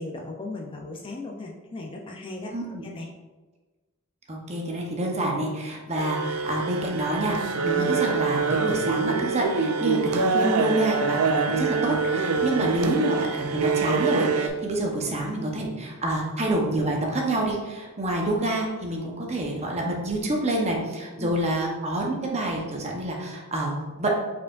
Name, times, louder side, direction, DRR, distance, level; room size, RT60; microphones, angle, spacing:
voice 1, 0.0-2.5 2.8-3.1 12.6-12.7 14.7-15.2 21.2-21.3, left 2 dB, 25° left, 0 dB, 0.4 m, -37 dB
voice 2, 2.5-2.8 4.3-24.2, right 1 dB, 30° right, 0 dB, 0.8 m, -27 dB
sound 1, 6.0-14.5, right 5 dB, 85° right, 0.4 m, -25 dB
4.7 x 4.5 x 2.4 m, 1.2 s
head